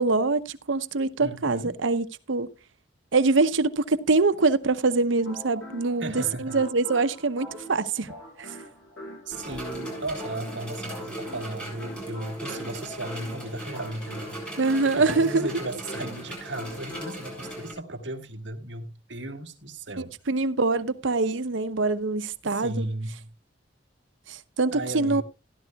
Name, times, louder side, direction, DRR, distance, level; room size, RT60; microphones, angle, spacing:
voice 1, 0.0-2.5 3.1-8.1 8.4-8.6 14.6-15.5 20.0-22.9 24.3-25.2, right 3 dB, 80° right, 0.8 m, -24 dB
voice 2, 1.2-1.8 6.0-6.6 9.3-14.4 14.8-20.1 22.4-23.3 24.7-25.2, right 1 dB, 65° right, 1.7 m, -35 dB
sound 1, 5.1-17.5, left 1 dB, 70° left, 6.5 m, -44 dB
sound 2, 9.3-17.7, right 1 dB, 5° left, 7.4 m, -38 dB
15.5 x 11.5 x 2.3 m
head